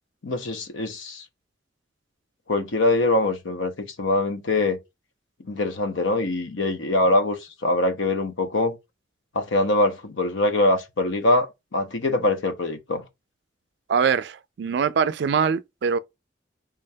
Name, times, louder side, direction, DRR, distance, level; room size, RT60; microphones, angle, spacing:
voice 1, 0.2-1.2 2.5-4.8 5.5-8.8 9.3-11.5 11.7-13.0, left 2 dB, 85° left, 0.7 m, -23 dB
voice 2, 13.9-16.0, right 6 dB, 60° right, 0.3 m, -23 dB
3.5 x 3.4 x 2.7 m
head